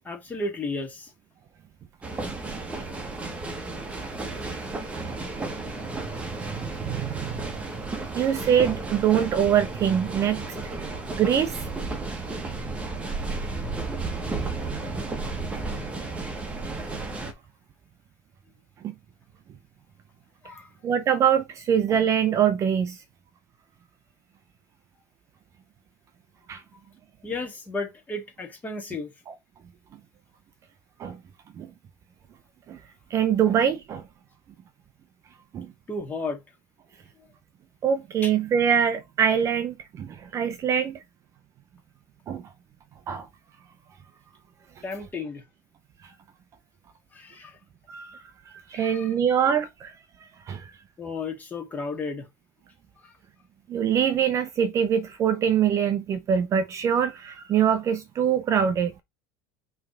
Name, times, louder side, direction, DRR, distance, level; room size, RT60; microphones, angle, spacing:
voice 1, 0.0-1.1 2.7-2.9 20.4-20.7 27.2-29.1 35.9-36.4 37.2-37.3 38.2-38.3 44.8-45.4 47.1-47.6 48.7-49.1 51.0-52.3 53.0-53.2, left 3 dB, 15° left, 2.0 m, -33 dB
sound 1, 2.0-17.3, right 3 dB, 10° right, 1.3 m, -33 dB
voice 2, 6.5-7.6 8.1-10.7 11.1-11.6 14.3-14.4 18.8-18.9 20.8-23.0 26.5-26.6 31.0-31.2 31.6-31.7 32.7-32.8 33.1-34.0 35.5-35.7 37.8-41.0 42.3-42.5 43.1-43.3 47.9-48.2 48.7-50.0 50.5-50.7 53.7-59.0, right 8 dB, 30° right, 0.7 m, -24 dB
5.7 x 3.4 x 5.0 m
cardioid pair, 155°, 10 cm